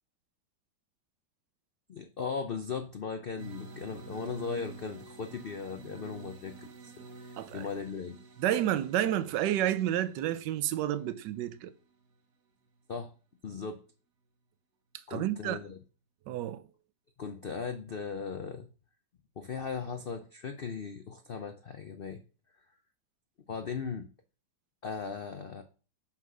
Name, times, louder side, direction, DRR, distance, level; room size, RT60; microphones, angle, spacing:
voice 1, 1.9-6.9 7.2-8.2 12.9-13.1 13.4-13.8 15.1-15.8 17.2-18.7 19.4-22.2 23.5-24.1 24.8-25.6, left 5 dB, 80° left, 0.5 m, -38 dB
sound 1, 3.4-12.2, right 3 dB, 55° right, 1.4 m, -49 dB
voice 2, 7.4-7.7 8.4-11.7 15.1-15.6 16.3-16.6, right 12 dB, 75° right, 1.3 m, -30 dB
5.9 x 5.9 x 6.1 m
omnidirectional pair, 1.9 m